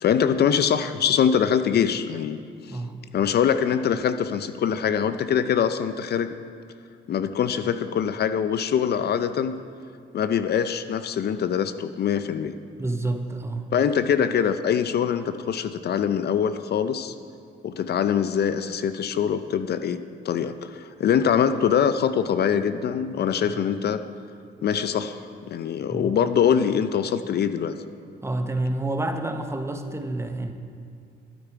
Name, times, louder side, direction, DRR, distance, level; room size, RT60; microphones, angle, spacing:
voice 1, 0.0-2.4 2.7-2.8 3.1-6.3 7.1-9.5 10.1-12.5 13.7-17.1 17.6-24.0 24.6-27.7, left 8 dB, 55° left, 11 dB, 0.5 m, -23 dB
voice 2, 12.8-13.7 23.4-23.5 25.9-26.1 28.2-30.5, right 2 dB, 15° right, 6 dB, 0.8 m, -28 dB
12.0 x 8.9 x 4.7 m, 2.3 s
cardioid pair, 90°, 20 cm